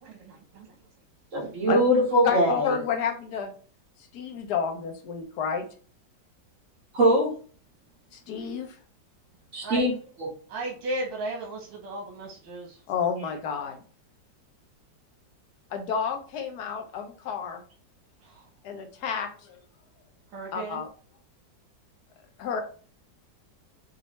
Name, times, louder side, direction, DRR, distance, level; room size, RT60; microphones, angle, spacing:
voice 1, 0.0-0.7 9.6-9.8 10.5-12.8 20.3-20.8, right 2 dB, 90° right, 0 dB, 1.7 m, -35 dB
voice 2, 1.3-2.8 6.9-7.3 9.5-9.9 10.2-10.3, equal, 45° right, -3 dB, 2.1 m, -22 dB
voice 3, 2.2-3.5 4.1-5.7 8.1-8.8 12.9-13.8 15.7-17.6 18.6-19.6 20.5-20.9 22.4-22.6, left 7 dB, 65° left, 5 dB, 1.3 m, -30 dB
6.1 x 2.6 x 3.1 m, 0.41 s
omnidirectional pair, 2.0 m